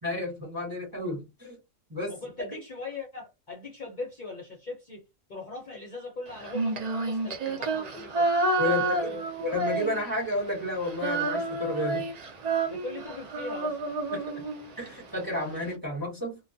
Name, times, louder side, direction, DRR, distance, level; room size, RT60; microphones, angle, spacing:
voice 1, 0.0-1.6 1.9-2.2 8.6-12.1 14.1-14.5 14.8-16.4, left 2 dB, 20° right, 0.8 m, -32 dB
voice 2, 2.1-5.0 5.3-8.3 8.9-9.2 12.7-14.1, left 3 dB, 45° left, 0.6 m, -40 dB
Female singing, 6.4-10.3 10.6-14.9, right 3 dB, 85° right, 0.3 m, -29 dB
2.3 x 2.2 x 2.6 m
omnidirectional pair, 1.4 m